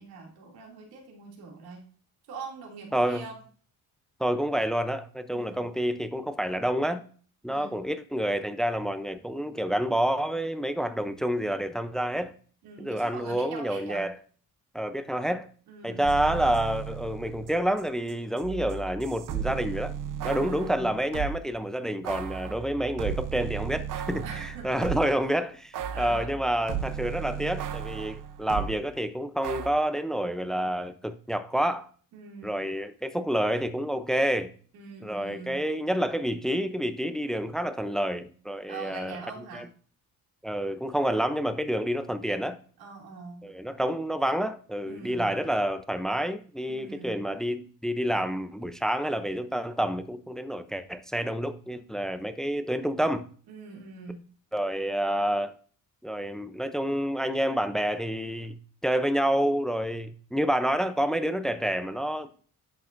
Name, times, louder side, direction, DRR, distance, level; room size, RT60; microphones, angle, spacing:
voice 1, 0.0-1.8 2.3-3.4 5.3-5.6 7.5-7.8 12.6-14.1 15.7-16.1 20.2-20.9 24.2-24.7 25.9-26.3 32.1-32.7 34.7-35.6 38.7-39.7 42.8-43.4 44.8-45.3 46.7-47.2 53.5-54.3, right 4 dB, 85° right, 2.7 m, -43 dB
voice 2, 2.9-3.2 4.2-7.0 7.4-12.3 12.8-14.2 14.7-15.5 15.8-19.9 20.2-31.9 32.4-34.5 35.0-39.2 39.5-39.7 40.4-42.6 43.4-53.2 54.5-55.5 56.0-58.6 58.8-62.3, equal, ahead, 0.5 m, -28 dB
sound 1, 16.0-17.8 18.1-21.4 22.0-25.2 25.7-28.8 29.4-29.7, right 8 dB, 55° right, 0.8 m, -35 dB
10.5 x 8.0 x 2.6 m
cardioid pair, 120°, 37 cm